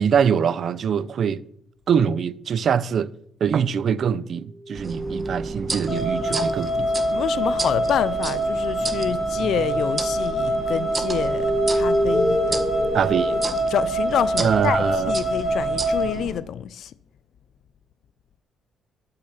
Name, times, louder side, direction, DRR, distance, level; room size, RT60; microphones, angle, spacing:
voice 1, 0.0-1.4 1.9-3.1 3.4-6.9 12.9-13.3 14.4-15.1, right 7 dB, 60° right, 0.6 m, -23 dB
sound 1, 4.6-7.7 8.2-13.5, equal, 5° right, 4.2 m, -29 dB
sound 2, 4.7-16.4, right 3 dB, 30° right, 1.6 m, -33 dB
sound 3, 5.9-16.1, right 1 dB, 30° left, 2.8 m, -25 dB
voice 2, 7.1-12.7 13.3-16.9, left 9 dB, 70° left, 0.6 m, -28 dB
11.5 x 6.8 x 5.7 m
cardioid pair, 90°, 0 cm